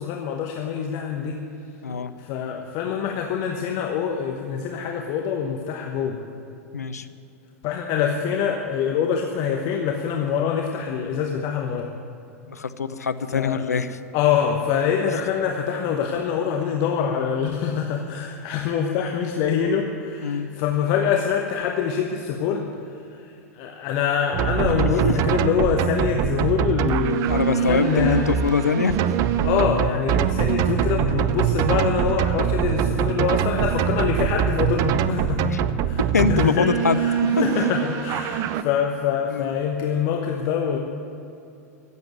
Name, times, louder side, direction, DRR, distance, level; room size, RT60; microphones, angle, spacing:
voice 1, 0.0-1.4 2.2-6.2 7.6-11.9 13.3-13.6 14.1-28.2 29.4-40.8, left 7 dB, 45° left, 2 dB, 1.1 m, -25 dB
voice 2, 6.7-7.1 12.5-14.0 20.2-20.5 24.6-25.1 27.3-29.0 35.5-35.6 36.1-37.0 39.3-39.5, left 5 dB, 80° left, 11 dB, 0.7 m, -24 dB
sound 1, 24.3-38.6, right 10 dB, 40° right, 0.6 m, -23 dB
15.0 x 7.8 x 9.4 m, 2.7 s
figure-of-eight pair, 90°, 9 cm